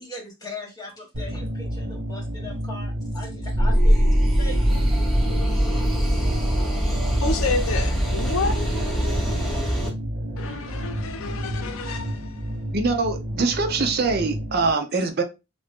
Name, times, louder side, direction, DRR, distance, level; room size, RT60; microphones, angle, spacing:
voice 1, 0.0-4.1 4.4-4.8, left 1 dB, 20° left, 1.2 m, -39 dB
sound 1, 1.1-14.7, equal, 90° right, 1.0 m, -32 dB
sound 2, 3.5-9.9, equal, ahead, 0.8 m, -22 dB
voice 2, 7.2-8.6 10.4-12.5, left 3 dB, 85° left, 0.6 m, -29 dB
voice 3, 12.7-15.2, right 3 dB, 50° right, 0.6 m, -23 dB
3.3 x 2.6 x 3.5 m
head